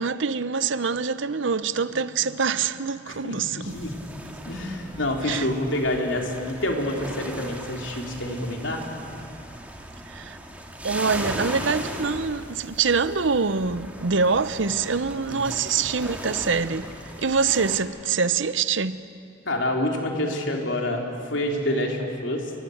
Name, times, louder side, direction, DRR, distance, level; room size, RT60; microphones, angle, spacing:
voice 1, 0.0-3.7 5.3-5.5 10.1-10.4 10.8-16.9 17.2-19.0, right 5 dB, 65° right, 0.8 m, -25 dB
voice 2, 3.1-3.9 4.5-8.8 15.2-15.5 19.5-22.5, left 1 dB, 65° left, 3.7 m, -27 dB
sound 1, 3.7-17.8, right 1 dB, 5° right, 2.2 m, -38 dB
29.5 x 24.5 x 8.0 m
head